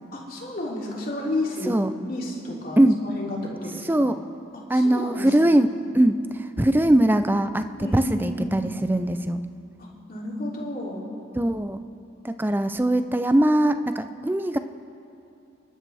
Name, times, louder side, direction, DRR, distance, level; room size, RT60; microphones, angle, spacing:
voice 1, 0.1-1.8 2.0-4.1 4.5-5.6 7.8-8.5 9.8-11.1, left 1 dB, 45° left, -4 dB, 3.0 m, -32 dB
voice 2, 3.9-4.2 4.7-6.2 6.6-9.4 11.4-11.8 12.2-14.6, right 1 dB, 10° right, 10 dB, 0.4 m, -21 dB
30.0 x 12.0 x 3.4 m, 2.7 s
head